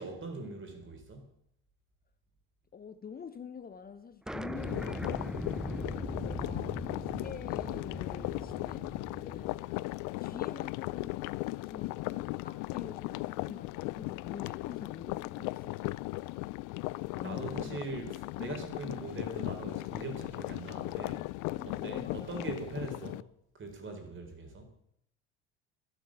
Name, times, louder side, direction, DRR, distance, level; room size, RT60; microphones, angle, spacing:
voice 1, 0.0-1.4 6.4-6.7 17.2-21.3 21.6-23.3 23.6-24.6, right 3 dB, 35° right, 4.2 m, -42 dB
voice 2, 2.7-9.6 10.2-15.8 17.1-17.8 21.5-22.4, left 6 dB, 25° left, 0.9 m, -47 dB
sound 1, 4.3-9.6, equal, ahead, 0.7 m, -40 dB
sound 2, 4.6-23.2, left 21 dB, 70° left, 0.5 m, -37 dB
11.5 x 10.5 x 7.4 m
supercardioid pair, 80°, 33 cm